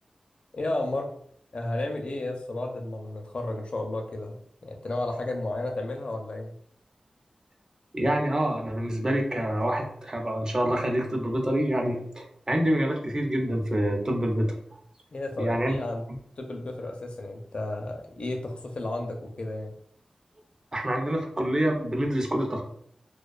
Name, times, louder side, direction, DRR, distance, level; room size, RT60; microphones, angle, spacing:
voice 1, 0.5-1.1 1.5-6.5 15.1-16.0 16.4-19.7, left 2 dB, 60° left, 2 dB, 0.5 m, -32 dB
voice 2, 7.9-14.6 15.4-15.7 20.7-22.6, right 1 dB, 35° right, 1 dB, 0.5 m, -26 dB
2.3 x 2.2 x 2.3 m, 0.66 s
wide cardioid pair, 65°, 2 cm